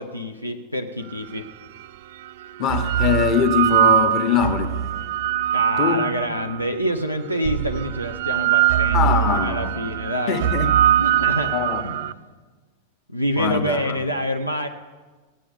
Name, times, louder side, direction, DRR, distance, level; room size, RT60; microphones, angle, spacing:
voice 1, 0.0-1.4 5.5-10.4 11.0-11.5 11.8-12.1 13.1-14.7, equal, 90° left, 0.7 m, -27 dB
sound 1, 1.4-1.5 2.4-6.7 7.4-12.1, right 11 dB, 55° right, 0.3 m, -22 dB
voice 2, 2.6-4.8 5.8-6.1 8.9-9.7 10.3-10.8 11.5-12.0 13.4-13.9, left 7 dB, 35° left, 1.3 m, -22 dB
16.5 x 7.7 x 6.9 m
figure-of-eight pair, 90°, 0 cm